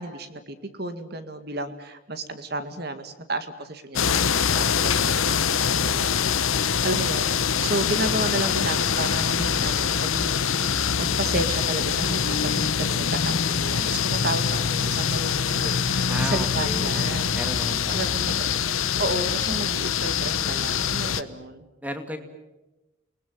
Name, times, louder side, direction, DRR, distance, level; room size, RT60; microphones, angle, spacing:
voice 1, 0.0-10.7 11.0-17.4 17.9-18.5 19.0-21.7, right 2 dB, 50° right, 9 dB, 2.1 m, -32 dB
sound 1, 4.0-21.2, left 7 dB, 85° left, 1.0 m, -24 dB
voice 2, 16.1-18.1 18.5-18.6 21.8-22.2, equal, 5° right, 7 dB, 2.4 m, -35 dB
28.5 x 20.5 x 9.3 m, 1.0 s
head